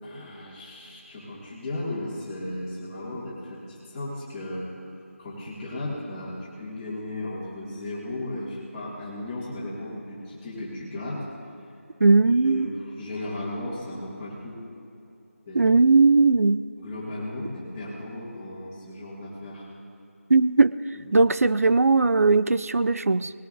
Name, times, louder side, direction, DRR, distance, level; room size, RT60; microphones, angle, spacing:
voice 1, 0.0-4.7 5.2-11.2 12.4-14.6 15.5-15.7 16.8-19.7 20.9-21.2, left 1 dB, 10° left, -8 dB, 2.1 m, -35 dB
voice 2, 12.0-12.7 15.5-16.6 20.3-20.7 21.1-23.3, right 3 dB, 85° right, 15 dB, 0.4 m, -18 dB
20.0 x 15.0 x 2.6 m, 2.8 s
figure-of-eight pair, 170°, 8 cm